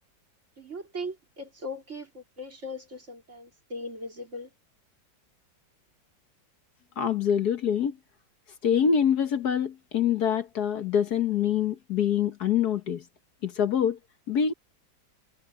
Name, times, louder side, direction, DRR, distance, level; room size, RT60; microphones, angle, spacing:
voice 1, 0.6-4.5, left 1 dB, 40° right, 3.5 m, -39 dB
voice 2, 7.0-8.0 8.6-13.0 13.4-14.0 14.3-14.5, left 8 dB, 60° left, 1.6 m, -25 dB
omnidirectional pair, 1.9 m